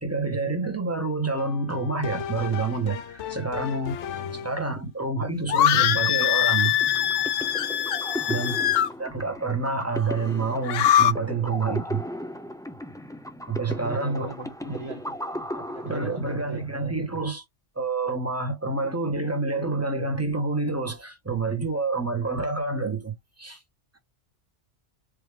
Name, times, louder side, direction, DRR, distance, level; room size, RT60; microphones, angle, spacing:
voice 1, 0.0-4.0 4.3-6.7 8.3-8.6 9.0-12.0 13.5-14.3 14.6-14.8 15.8-17.4 17.7-23.6, right 3 dB, 15° right, 1.5 m, -28 dB
sound 1, 1.4-4.7, left 9 dB, 85° left, 1.1 m, -36 dB
voice 2, 4.1-4.5 8.2-8.7 13.7-16.7, right 4 dB, 30° right, 0.9 m, -41 dB
sound 2, 5.5-8.9 10.6-11.1, left 11 dB, 65° left, 0.7 m, -22 dB
sound 3, 5.8-16.6, left 1 dB, 5° left, 0.5 m, -37 dB
4.8 x 3.1 x 3.4 m
omnidirectional pair, 1.2 m